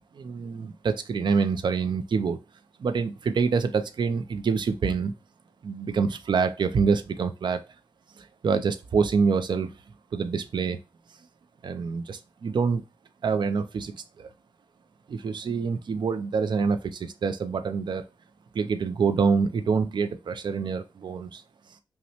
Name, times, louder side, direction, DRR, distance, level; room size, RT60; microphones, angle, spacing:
voice 1, 0.2-2.4 2.8-5.1 5.6-7.6 8.2-9.7 10.1-10.8 11.6-12.8 13.2-14.3 15.1-18.1 18.5-21.4, right 5 dB, 65° right, 9 dB, 0.4 m, -26 dB
5.5 x 2.1 x 2.8 m, 0.26 s
wide cardioid pair, 130°, 8 cm